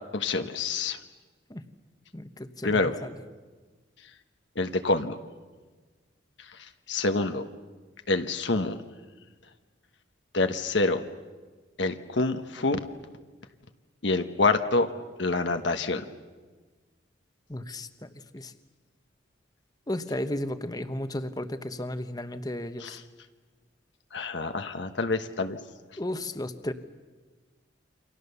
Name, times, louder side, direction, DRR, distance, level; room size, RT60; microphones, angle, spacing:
voice 1, 0.1-1.0 2.6-2.9 4.6-5.2 6.9-7.4 8.1-8.8 10.3-11.0 11.8-12.8 14.0-14.9 15.2-16.0 22.8-22.9 24.1-25.6, left 3 dB, 70° left, 7 dB, 1.2 m, -26 dB
voice 2, 2.1-3.2 17.5-18.5 19.9-23.0 26.0-26.7, left 1 dB, 20° left, 9 dB, 1.1 m, -34 dB
29.0 x 25.5 x 6.9 m, 1.4 s
head